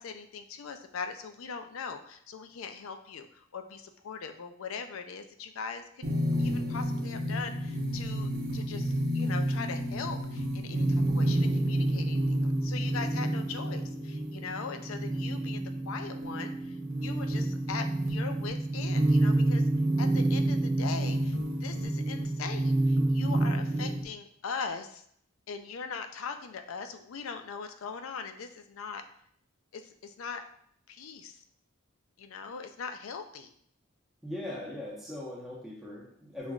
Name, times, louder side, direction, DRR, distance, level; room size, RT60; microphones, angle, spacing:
voice 1, 0.0-6.0 6.4-16.8 17.0-19.6 20.0-25.0 25.5-29.0 29.7-30.4 30.9-31.4 32.2-33.5, left 5 dB, 80° left, 7 dB, 0.4 m, -40 dB
sound 1, 6.0-24.0, right 1 dB, 85° right, 0.8 m, -29 dB
voice 2, 23.7-24.0 34.2-36.5, left 1 dB, ahead, -6 dB, 0.8 m, -40 dB
6.1 x 2.5 x 2.4 m, 0.64 s
head